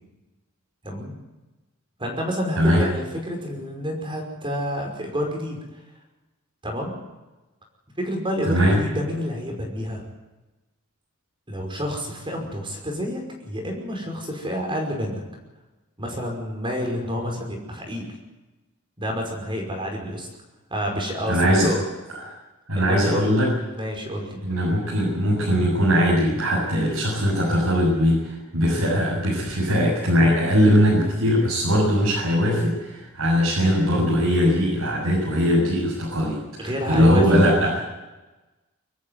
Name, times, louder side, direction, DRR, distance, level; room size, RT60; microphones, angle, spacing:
voice 1, 0.8-1.1 2.0-5.6 6.6-6.9 8.0-10.0 11.5-15.3 16.0-18.1 19.0-20.3 20.7-21.8 22.8-23.3 23.7-24.4 36.6-37.6, equal, 25° right, 1 dB, 5.5 m, -29 dB
voice 2, 8.5-8.8 21.3-21.7 22.1-22.3 22.7-23.5 24.4-37.8, equal, 80° right, -4 dB, 7.8 m, -20 dB
25.5 x 14.0 x 9.5 m, 1.1 s
head